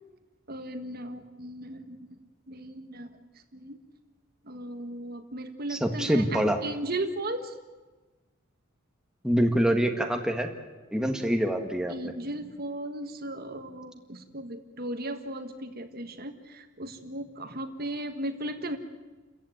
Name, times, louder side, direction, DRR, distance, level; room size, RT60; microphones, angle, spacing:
voice 1, 0.5-2.1 2.5-3.1 3.5-3.8 4.5-7.5 11.9-18.8, right 1 dB, 45° right, 7 dB, 1.6 m, -36 dB
voice 2, 5.7-6.6 9.2-10.5 10.9-12.1, equal, 5° right, 4 dB, 1.7 m, -25 dB
29.5 x 15.0 x 9.3 m, 1.2 s
head